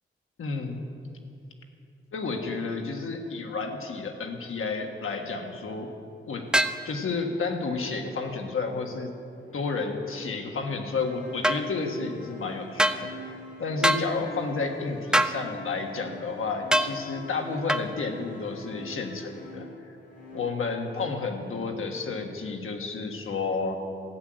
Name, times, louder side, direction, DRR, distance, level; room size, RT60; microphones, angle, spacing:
voice 1, 0.4-0.8 2.1-5.9 6.3-6.4 6.8-9.1 9.5-20.0 20.3-23.8, left 4 dB, 85° left, 3 dB, 1.6 m, -31 dB
sound 1, 6.5-6.8 11.4-11.6 12.8-13.0 13.8-14.1 15.1-15.4 16.7-16.9 17.7-17.9, right 1 dB, 5° right, 0.4 m, -22 dB
sound 2, 7.7-21.6, left 1 dB, 40° left, 2.8 m, -45 dB
14.5 x 8.9 x 7.9 m, 2.6 s
wide cardioid pair, 175°, 21 cm